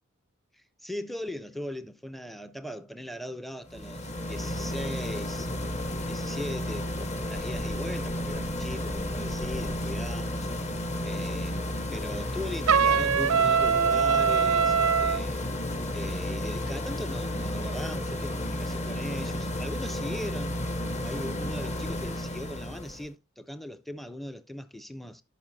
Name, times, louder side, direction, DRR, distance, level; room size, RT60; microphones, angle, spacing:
voice 1, 0.5-5.5 6.1-10.5 11.0-15.5 15.9-20.6 21.0-25.2, left 1 dB, ahead, 0.4 m, -39 dB
sound 1, 3.7-23.1, left 1 dB, 35° left, 0.9 m, -32 dB
Trumpet, 12.7-15.2, right 6 dB, 90° right, 0.5 m, -22 dB
13.5 x 5.7 x 2.6 m
head